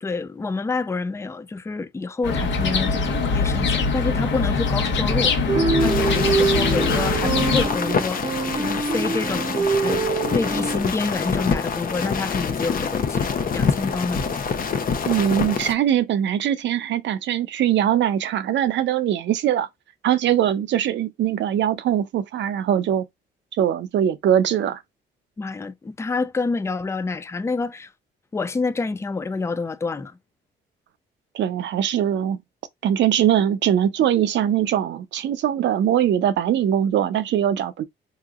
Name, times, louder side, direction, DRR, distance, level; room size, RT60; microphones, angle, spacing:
voice 1, 0.0-10.0 10.3-14.2 25.4-27.9 28.3-30.2, left 3 dB, 15° left, 0.4 m, -28 dB
sound 1, 2.2-7.7, left 4 dB, 70° left, 1.0 m, -22 dB
sound 2, 5.5-10.8, right 4 dB, 25° right, 0.7 m, -24 dB
sound 3, 5.8-15.7, left 6 dB, 45° left, 0.7 m, -26 dB
voice 2, 15.0-19.7 20.0-23.0 23.6-24.8 31.3-32.4 32.8-37.9, right 10 dB, 65° right, 0.6 m, -21 dB
3.7 x 2.8 x 2.4 m
cardioid pair, 90°, 20 cm